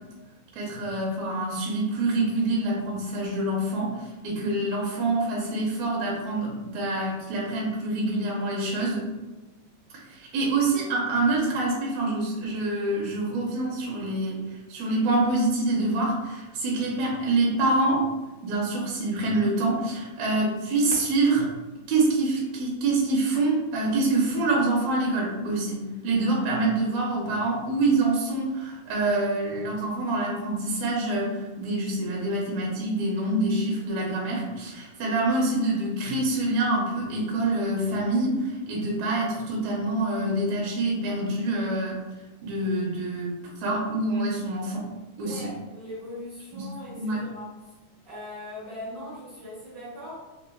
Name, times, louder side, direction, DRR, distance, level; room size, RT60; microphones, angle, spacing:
voice 1, 0.6-9.1 10.1-18.0 18.4-21.5 21.9-42.0 42.4-44.9 45.2-45.5 46.5-47.2, right 2 dB, 70° right, -4 dB, 1.9 m, -26 dB
voice 2, 45.2-47.7 48.1-50.2, left 1 dB, 55° right, -12 dB, 1.0 m, -40 dB
5.1 x 2.3 x 2.3 m, 1.1 s
omnidirectional pair, 3.5 m